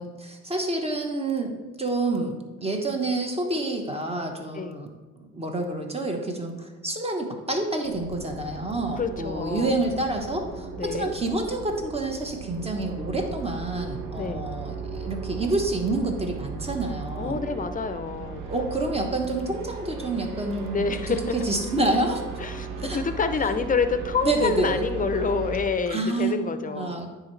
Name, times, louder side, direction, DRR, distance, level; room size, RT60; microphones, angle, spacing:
voice 1, 0.0-4.9 5.3-17.4 18.5-22.2 22.8-23.0 24.2-24.8 25.9-26.4 26.7-27.1, right 2 dB, 20° right, 3 dB, 1.1 m, -28 dB
sound 1, 7.8-25.6, right 5 dB, 90° right, 0.9 m, -36 dB
voice 2, 8.9-9.8 10.8-11.1 14.2-14.5 17.2-18.4 20.7-21.5 22.4-27.0, left 5 dB, 25° left, 10 dB, 0.5 m, -27 dB
9.6 x 3.9 x 3.2 m, 1.2 s
cardioid pair, 90°, 30 cm